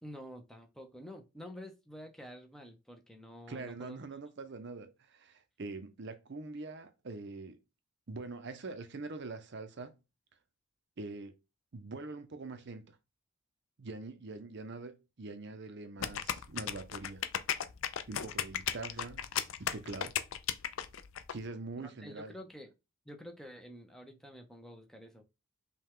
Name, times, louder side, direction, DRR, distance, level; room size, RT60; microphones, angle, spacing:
voice 1, 0.0-4.0 21.8-22.7 23.1-25.2, equal, ahead, 0.6 m, -49 dB
voice 2, 3.5-7.6 8.1-9.9 11.0-11.3 11.7-13.0 13.8-17.2 18.1-19.2 19.6-20.2 21.3-22.3, right 3 dB, 55° right, 0.6 m, -44 dB
sound 1, 16.0-21.3, left 9 dB, 65° left, 0.4 m, -35 dB
5.5 x 2.3 x 3.6 m
head